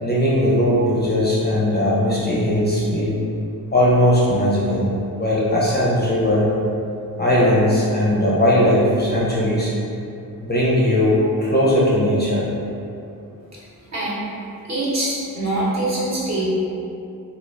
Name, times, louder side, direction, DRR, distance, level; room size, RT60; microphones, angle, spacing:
voice 1, 0.0-3.2 3.7-6.5 7.2-9.7 10.4-12.5, left 1 dB, 25° left, -7 dB, 0.4 m, -18 dB
voice 2, 13.9-14.2 14.6-16.5, right 1 dB, 45° right, -8 dB, 0.9 m, -24 dB
3.3 x 2.3 x 3.5 m, 2.7 s
wide cardioid pair, 170°, 38 cm